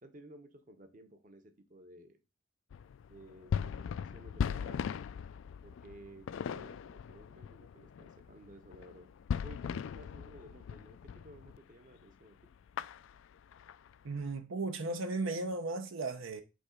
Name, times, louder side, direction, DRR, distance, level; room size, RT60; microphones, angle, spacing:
voice 1, 0.0-2.2 3.1-4.9 5.6-9.1 9.4-12.4, right 1 dB, 40° right, 0.8 m, -55 dB
sound 1, 2.7-11.6 11.9-12.1 12.4-14.3, left 7 dB, 70° left, 0.3 m, -39 dB
voice 2, 14.0-16.4, right 3 dB, 75° right, 0.7 m, -36 dB
5.1 x 3.8 x 5.0 m
head